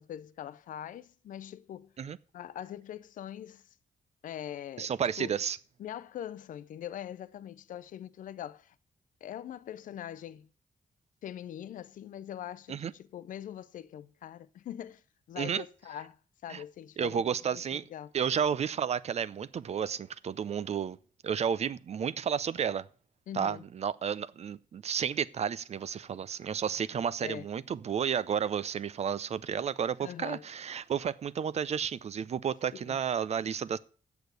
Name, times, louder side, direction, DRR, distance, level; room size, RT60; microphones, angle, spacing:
voice 1, 0.0-1.9 2.3-3.8 4.2-4.9 5.2-5.4 5.8-8.8 9.2-10.5 11.2-15.0 15.3-17.2 17.5-17.6 17.9-18.1 23.3-23.6 27.2-27.5 30.0-30.5 32.7-33.0, left 10 dB, 75° left, 0.5 m, -42 dB
voice 2, 4.8-5.6 12.7-12.9 15.4-15.6 16.5-16.6 17.0-17.8 18.1-21.0 21.2-22.9 23.3-33.8, right 7 dB, 55° right, 0.6 m, -32 dB
8.2 x 6.9 x 8.0 m
cardioid pair, 105°, 14 cm